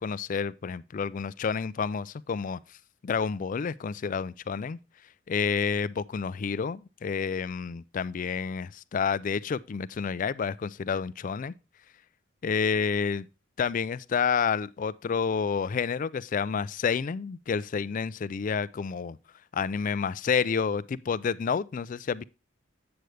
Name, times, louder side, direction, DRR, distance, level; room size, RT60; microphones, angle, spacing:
voice 1, 0.0-2.6 3.0-4.8 5.3-11.5 12.4-13.3 13.6-19.2 19.5-22.2, left 6 dB, 40° left, 0.3 m, -29 dB
7.9 x 7.8 x 3.2 m
head